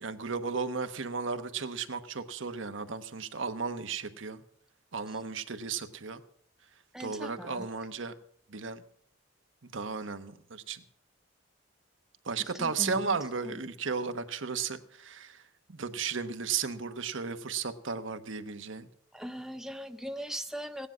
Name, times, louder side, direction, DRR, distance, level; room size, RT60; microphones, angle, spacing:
voice 1, 0.0-4.4 4.9-6.2 7.0-8.1 8.5-8.8 9.6-10.8 12.2-15.4 15.7-18.9, right 5 dB, 70° right, 9 dB, 1.0 m, -34 dB
voice 2, 6.9-7.5 12.8-12.9 19.2-20.9, equal, ahead, 8 dB, 0.5 m, -39 dB
16.5 x 10.0 x 6.1 m, 0.66 s
head